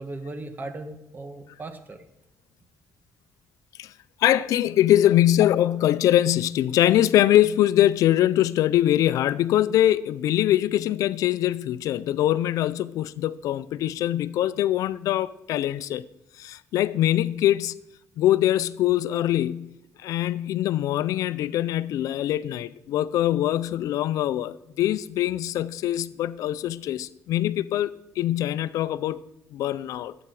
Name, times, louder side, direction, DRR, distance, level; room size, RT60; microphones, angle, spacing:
voice 1, 0.0-2.0, right 2 dB, 35° right, 1.7 m, -37 dB
voice 2, 4.2-16.0 16.4-17.8 18.2-19.7 20.0-29.2 29.5-30.2, left 12 dB, 80° left, 0.5 m, -23 dB
19.0 x 8.8 x 4.8 m
cardioid pair, 100°, 6 cm